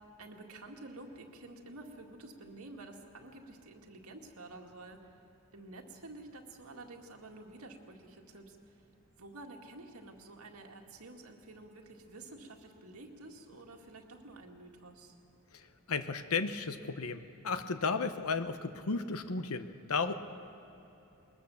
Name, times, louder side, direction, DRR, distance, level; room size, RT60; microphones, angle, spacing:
voice 1, 0.2-5.1 5.5-8.6 9.2-15.1, right 2 dB, 80° right, 2 dB, 2.0 m, -50 dB
voice 2, 15.5-20.1, left 4 dB, 80° left, 10 dB, 0.9 m, -34 dB
21.0 x 20.5 x 7.0 m, 3.0 s
head